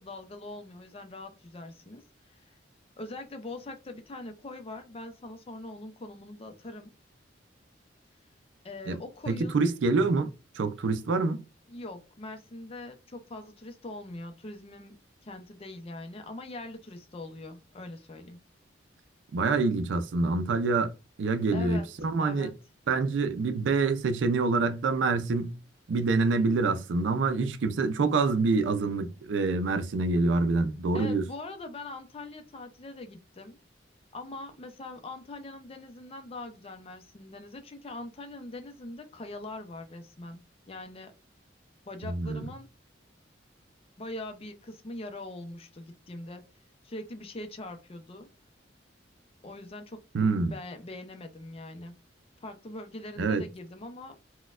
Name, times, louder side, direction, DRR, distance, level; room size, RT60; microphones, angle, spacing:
voice 1, 0.0-2.0 2.3-2.5 3.0-6.9 8.6-9.6 11.7-15.0 15.2-18.4 21.5-21.9 22.2-22.5 30.9-33.6 34.1-40.4 40.7-41.1 41.9-42.7 44.0-46.4 46.8-48.3 49.4-50.0 50.5-51.9 52.4-54.2, left 2 dB, 35° left, 0.5 m, -42 dB
voice 2, 9.3-10.3 10.5-11.4 19.3-20.9 21.2-22.5 22.9-25.6 25.9-31.2 42.0-42.5 50.1-50.5 53.2-53.4, right 3 dB, 85° right, 0.4 m, -26 dB
4.1 x 2.2 x 2.4 m
head